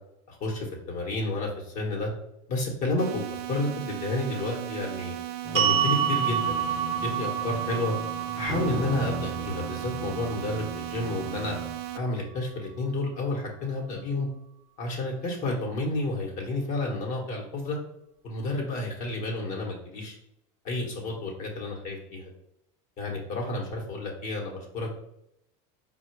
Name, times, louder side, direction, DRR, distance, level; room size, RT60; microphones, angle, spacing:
voice 1, 0.3-2.1 2.5-5.1 5.5-7.9 8.4-11.6 11.9-14.3 14.8-17.8 18.2-20.2 20.6-22.2 23.0-24.9, left 2 dB, 50° left, -1 dB, 1.1 m, -31 dB
sound 1, 3.0-12.0, right 13 dB, 65° right, 0.4 m, -36 dB
sound 2, 5.4-11.8, right 2 dB, 5° right, 0.8 m, -39 dB
sound 3, 5.6-11.8, right 8 dB, 40° right, 0.7 m, -30 dB
4.2 x 2.3 x 4.4 m, 0.81 s
supercardioid pair, 130°, 17 cm